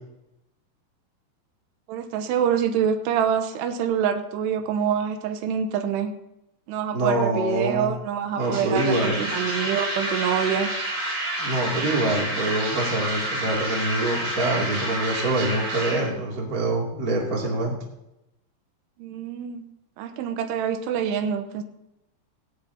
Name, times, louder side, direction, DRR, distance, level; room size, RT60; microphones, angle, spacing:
voice 1, 1.9-6.1 6.7-10.7 19.0-19.7 20.0-21.6, right 8 dB, 85° right, 7 dB, 3.0 m, -26 dB
voice 2, 6.9-7.9 8.4-9.2 11.4-17.7, right 2 dB, 25° right, -2 dB, 2.4 m, -25 dB
sound 1, 8.4-16.0, right 1 dB, 50° right, 6.9 m, -29 dB
18.0 x 17.0 x 2.8 m, 0.90 s
omnidirectional pair, 4.9 m